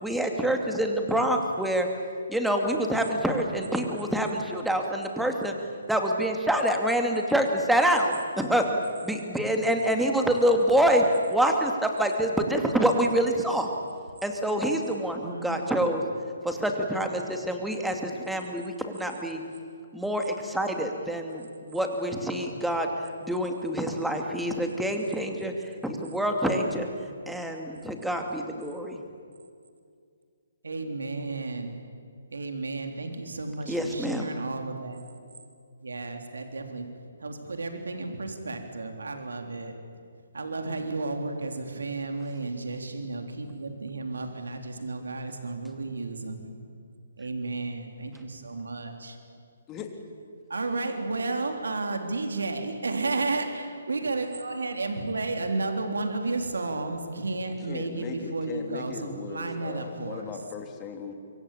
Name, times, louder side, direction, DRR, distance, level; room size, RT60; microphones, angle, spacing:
voice 1, 0.0-1.9 2.3-5.5 5.9-8.7 9.0-13.7 14.2-16.0 16.4-19.4 19.9-22.9 23.2-26.9 27.3-29.0 33.7-34.3, right 1 dB, ahead, 3 dB, 2.6 m, -26 dB
voice 2, 15.2-15.6 30.6-31.7 32.3-35.0 35.8-36.9 37.2-39.7 40.3-46.5 47.2-49.2 50.5-60.3, right 3 dB, 75° right, 5 dB, 3.6 m, -32 dB
voice 3, 57.6-61.1, left 6 dB, 20° left, 4 dB, 3.2 m, -38 dB
25.5 x 23.5 x 8.7 m, 2.3 s
figure-of-eight pair, 135°, 0 cm